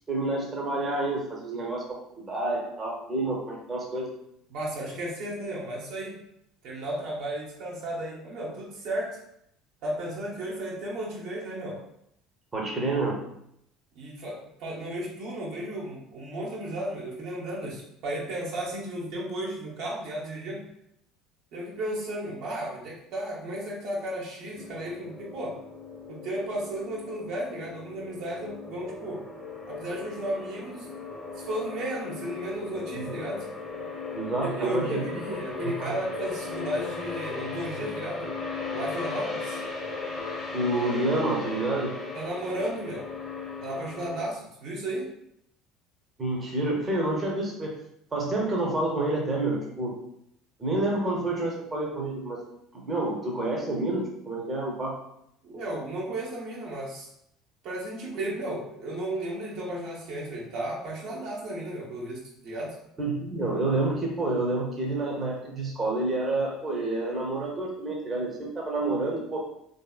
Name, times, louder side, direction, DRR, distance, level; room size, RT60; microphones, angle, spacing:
voice 1, 0.1-1.8 2.2-4.1 12.5-13.2 32.9-33.1 34.1-35.2 35.6-35.9 40.5-41.9 46.2-47.7 48.1-49.9 50.6-52.4 52.7-55.0 63.0-69.4, right 2 dB, 30° right, -2 dB, 0.8 m, -28 dB
voice 2, 4.5-6.2 6.6-9.2 9.8-11.8 13.9-20.6 21.5-25.6 26.1-29.2 29.7-30.9 31.4-33.4 34.4-38.3 38.7-39.6 42.1-43.1 43.6-45.1 55.4-57.1 57.6-62.8, right 1 dB, 60° right, -4 dB, 0.9 m, -34 dB
sound 1, 24.6-44.3, left 4 dB, 20° left, 1.0 m, -37 dB
3.4 x 2.7 x 2.3 m, 0.76 s
figure-of-eight pair, 60°, 0 cm